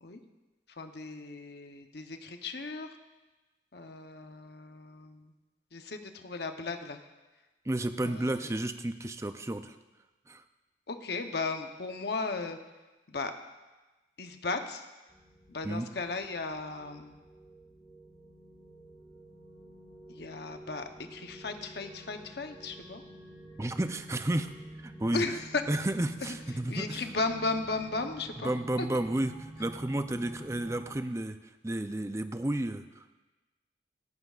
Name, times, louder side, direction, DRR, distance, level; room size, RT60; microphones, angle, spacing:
voice 1, 0.8-2.9 3.7-5.3 5.7-7.0 8.0-8.3 10.9-12.6 13.1-13.3 14.2-14.8 15.5-17.1 20.1-20.8 21.1-23.0 25.1-25.4 26.7-28.5 28.8-28.9, left 3 dB, 60° left, 6 dB, 0.8 m, -36 dB
voice 2, 7.7-9.8 10.3-10.4 15.6-15.9 23.6-24.5 24.8-25.3 25.7-27.1 28.4-31.4 31.6-33.2, right 1 dB, 15° right, 9 dB, 0.5 m, -32 dB
sound 1, 15.1-30.8, right 1 dB, ahead, 3.0 m, -49 dB
17.5 x 13.5 x 2.5 m, 1.2 s
head